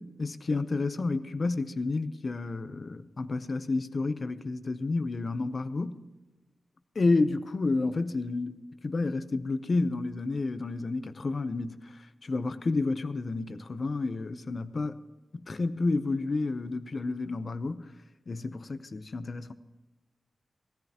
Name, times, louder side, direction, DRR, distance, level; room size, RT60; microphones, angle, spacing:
voice 1, 0.0-6.0 7.0-15.0 15.3-17.9 18.3-19.5, left 3 dB, 40° left, 0.6 m, -30 dB
18.0 x 14.0 x 2.9 m
wide cardioid pair, 155°, 0 cm